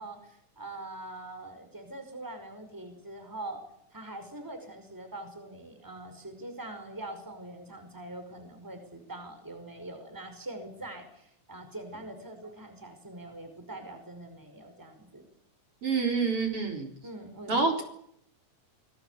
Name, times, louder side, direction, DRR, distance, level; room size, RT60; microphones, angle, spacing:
voice 1, 0.0-3.6 3.9-15.2 17.0-17.8, right 2 dB, 5° right, 7 dB, 5.0 m, -43 dB
voice 2, 15.8-16.9 17.5-17.8, right 4 dB, 50° right, 4 dB, 5.1 m, -27 dB
26.5 x 21.0 x 8.3 m, 0.73 s
omnidirectional pair, 3.4 m